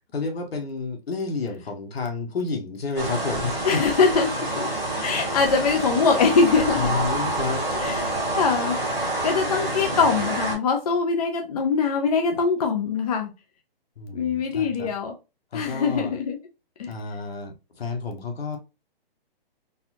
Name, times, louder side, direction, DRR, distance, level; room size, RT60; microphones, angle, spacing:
voice 1, 0.1-3.8 6.7-8.0 14.0-14.9 15.5-16.1 16.9-18.6, left 4 dB, 85° left, 1.4 m, -30 dB
sound 1, 2.9-10.5, right 2 dB, 5° left, 0.4 m, -27 dB
voice 2, 3.6-4.7 5.0-6.9 7.8-8.8 9.0-13.3 14.1-15.1 15.5-16.4 16.8-16.9, left 5 dB, 40° left, 0.7 m, -23 dB
4.1 x 2.4 x 2.6 m
hypercardioid pair, 170°, 30 cm